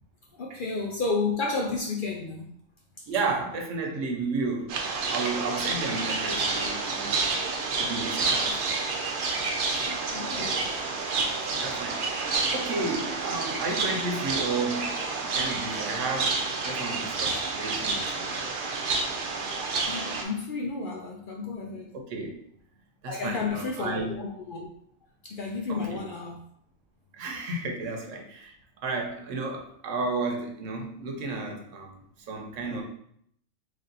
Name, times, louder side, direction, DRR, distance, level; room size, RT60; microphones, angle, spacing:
voice 1, 0.4-2.5 9.9-10.7 19.8-21.9 23.1-24.7 25.2-26.4, left 4 dB, 60° left, 0 dB, 0.5 m, -32 dB
voice 2, 3.1-7.3 7.8-8.6 10.4-10.6 11.6-12.3 12.5-14.9 15.2-18.3 21.9-22.4 23.0-24.2 25.7-26.0 27.2-28.5 28.8-32.0 32.3-32.8, right 3 dB, 80° right, 2 dB, 1.0 m, -32 dB
sound 1, 4.7-20.2, right 4 dB, 55° right, 0.6 m, -29 dB
3.2 x 2.6 x 3.9 m, 0.68 s
omnidirectional pair, 1.3 m